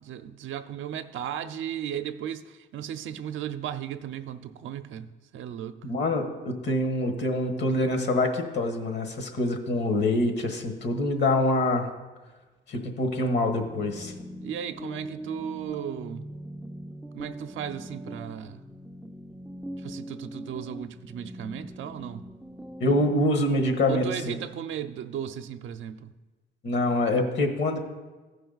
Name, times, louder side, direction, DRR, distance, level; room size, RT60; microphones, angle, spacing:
voice 1, 0.0-5.8 14.4-16.3 17.1-18.6 19.8-22.2 23.9-26.1, right 9 dB, 75° right, 0.5 m, -35 dB
voice 2, 5.8-11.9 12.7-14.1 22.8-24.4 26.6-27.8, left 1 dB, 65° left, 1.4 m, -25 dB
sound 1, 13.4-23.3, equal, 5° right, 0.4 m, -41 dB
14.5 x 5.0 x 4.0 m
cardioid pair, 90°, 20 cm